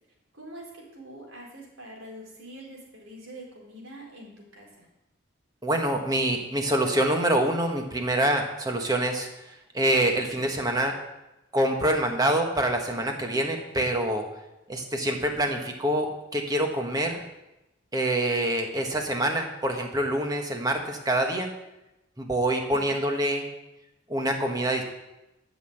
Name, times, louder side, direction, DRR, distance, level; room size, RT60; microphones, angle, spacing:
voice 1, 0.3-4.9, right 1 dB, 80° right, -1 dB, 4.0 m, -45 dB
voice 2, 5.6-9.3 9.7-10.9 11.5-14.2 14.7-17.2 17.9-21.5 22.2-23.4 24.1-24.8, right 1 dB, 20° right, 3 dB, 1.4 m, -26 dB
12.5 x 6.3 x 7.9 m, 0.95 s
head